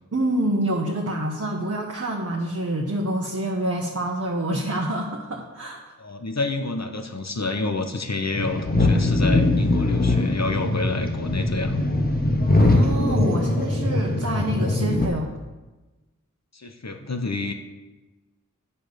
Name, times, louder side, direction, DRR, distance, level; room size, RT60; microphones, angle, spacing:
voice 1, 0.1-5.9 12.6-15.3, right 1 dB, 50° right, -1 dB, 1.1 m, -27 dB
voice 2, 6.0-11.8 16.5-17.5, left 3 dB, 55° left, 5 dB, 1.0 m, -28 dB
sound 1, 8.3-15.1, left 2 dB, 30° left, 1.1 m, -21 dB
8.9 x 5.5 x 6.5 m, 1.1 s
wide cardioid pair, 40°, 31 cm